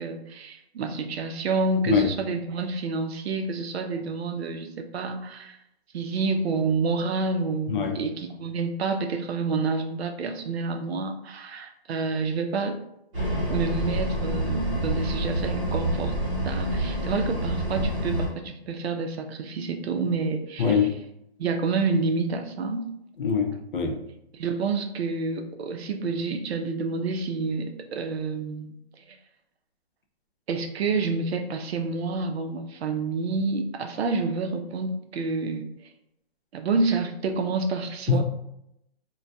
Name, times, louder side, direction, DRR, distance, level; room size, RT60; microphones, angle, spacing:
voice 1, 0.0-5.6 5.9-12.8 13.5-16.1 16.4-20.8 21.4-22.9 24.3-29.2 30.5-35.7 36.5-38.2, right 4 dB, 75° right, 6 dB, 0.5 m, -28 dB
voice 2, 7.7-8.0 17.8-17.9 20.6-21.0 23.2-24.0 38.1-38.2, left 5 dB, 55° left, 3 dB, 0.5 m, -23 dB
sound 1, 13.1-18.3, right 1 dB, 30° right, 1.0 m, -27 dB
2.2 x 2.2 x 2.6 m, 0.80 s
hypercardioid pair, 165°, 31 cm